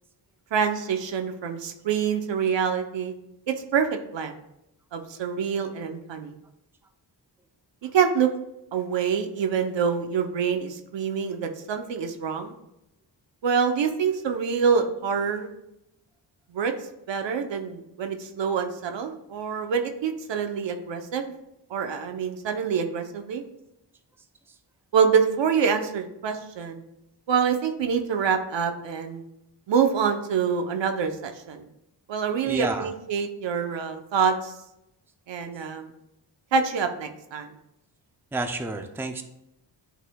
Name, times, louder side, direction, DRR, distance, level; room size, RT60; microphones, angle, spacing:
voice 1, 0.5-3.1 3.5-4.4 4.9-6.4 7.9-8.3 8.7-12.5 13.4-15.5 16.5-16.7 17.1-21.3 21.7-23.4 24.9-26.8 27.3-29.2 29.7-31.7 32.1-34.5 35.3-35.9 36.5-37.5, right 6 dB, 75° right, 6 dB, 0.8 m, -26 dB
voice 2, 32.5-32.9 38.3-39.2, right 2 dB, 5° right, 6 dB, 0.4 m, -30 dB
11.0 x 4.1 x 2.2 m, 0.86 s
wide cardioid pair, 110°, 44 cm